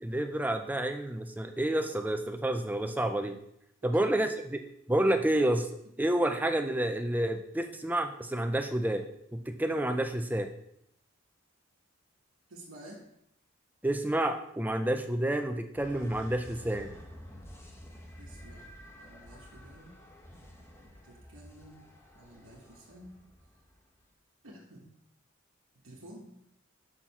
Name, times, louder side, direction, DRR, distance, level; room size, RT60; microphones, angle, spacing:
voice 1, 0.0-3.4 3.8-4.3 4.9-5.7 6.0-9.1 9.3-10.5 13.8-16.9, right 1 dB, 10° right, 6 dB, 0.4 m, -29 dB
voice 2, 3.8-4.3 12.5-13.1 18.2-19.9 21.0-21.9 22.1-23.2 24.4-24.9 25.7-26.4, right 1 dB, 80° right, -2 dB, 1.2 m, -50 dB
sound 1, 15.8-24.0, equal, 10° left, 0.9 m, -50 dB
5.8 x 4.5 x 5.5 m, 0.77 s
head